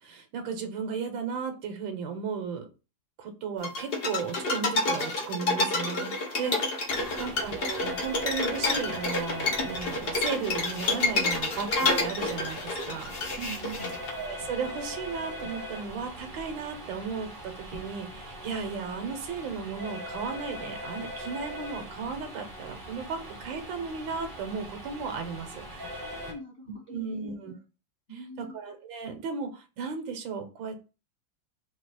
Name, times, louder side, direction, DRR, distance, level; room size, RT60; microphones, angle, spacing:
voice 1, 0.0-2.7 3.2-6.9 7.2-13.4 14.2-26.2 26.9-27.5 28.4-30.8, right 5 dB, 80° right, 6 dB, 1.6 m, -35 dB
sound 1, 3.6-14.1, left 3 dB, 65° left, 0.5 m, -29 dB
voice 2, 6.9-7.4 13.0-14.0 25.9-27.3 28.1-28.6, right 3 dB, 45° left, -2 dB, 1.0 m, -44 dB
sound 2, 6.9-26.3, equal, 15° right, 0.7 m, -41 dB
4.1 x 2.4 x 4.7 m, 0.32 s
omnidirectional pair, 2.1 m